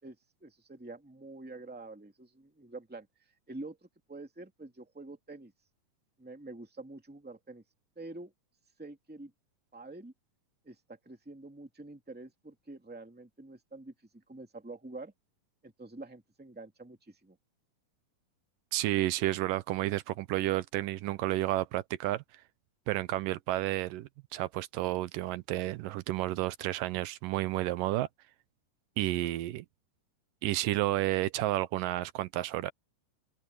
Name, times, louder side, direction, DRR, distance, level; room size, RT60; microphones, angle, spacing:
voice 1, 0.0-3.1 3.5-5.5 6.2-7.6 8.0-8.3 8.8-9.3 9.7-10.1 10.6-15.1 15.6-17.4, right 2 dB, 5° right, 1.9 m, -47 dB
voice 2, 18.7-22.2 22.9-28.1 29.0-29.7 30.4-32.7, right 16 dB, 80° right, 2.4 m, -31 dB
omnidirectional pair, 3.8 m